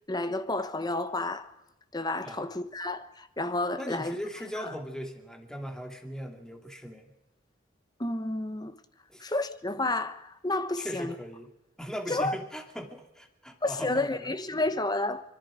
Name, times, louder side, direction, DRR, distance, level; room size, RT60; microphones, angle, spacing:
voice 1, 0.1-1.5 1.9-4.2 4.6-4.7 8.0-8.7 9.2-11.1 12.1-12.3 13.6-15.2, left 2 dB, 20° left, 1.1 m, -30 dB
voice 2, 3.8-7.1 9.1-9.3 10.8-11.5 11.8-14.3, equal, 5° left, 2.3 m, -39 dB
25.0 x 23.5 x 5.0 m
head